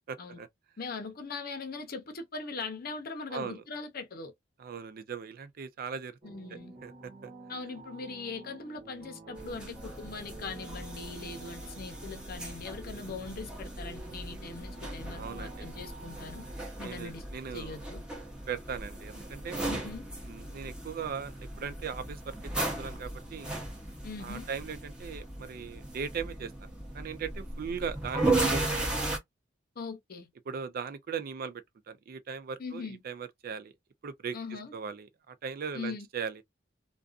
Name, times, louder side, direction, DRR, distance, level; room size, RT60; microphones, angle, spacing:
voice 1, 0.1-0.5 3.3-3.6 4.6-6.1 6.8-6.9 7.2-7.3 15.1-15.7 16.8-17.8 18.5-19.7 20.2-23.5 24.2-29.1 30.5-33.7 34.0-34.4 34.7-36.4, right 6 dB, 50° right, 0.4 m, -39 dB
voice 2, 0.8-4.3 6.2-6.7 7.5-16.4 16.8-17.2 17.5-18.0 19.7-20.1 24.0-24.5 29.8-30.3 32.6-33.0 34.3-34.7 35.7-36.1, left 4 dB, 55° left, 0.7 m, -41 dB
sound 1, 6.2-16.7, right 3 dB, 30° right, 1.1 m, -50 dB
sound 2, 9.4-29.2, right 2 dB, 5° right, 0.8 m, -36 dB
2.4 x 2.3 x 2.4 m
head